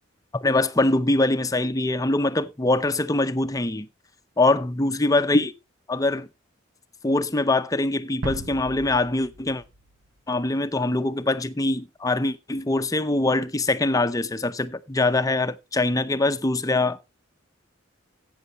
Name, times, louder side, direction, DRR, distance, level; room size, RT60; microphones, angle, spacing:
voice 1, 0.3-3.9 4.4-5.5 5.9-6.3 7.0-9.6 10.3-17.0, left 2 dB, 15° left, 0.6 m, -23 dB
sound 1, 8.2-10.7, right 2 dB, 85° right, 1.1 m, -37 dB
13.5 x 8.7 x 3.0 m
head